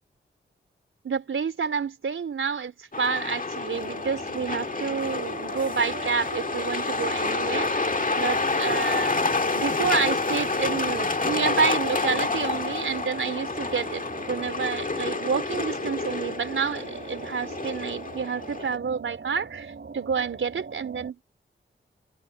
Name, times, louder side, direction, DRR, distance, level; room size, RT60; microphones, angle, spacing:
voice 1, 1.0-9.2 9.5-21.2, right 6 dB, 85° right, 4.2 m, -29 dB
Truck, 2.9-18.8, left 3 dB, 40° left, 1.9 m, -28 dB
sound 1, 3.7-21.1, right 5 dB, 65° right, 4.9 m, -42 dB
cardioid pair, 50°, 20 cm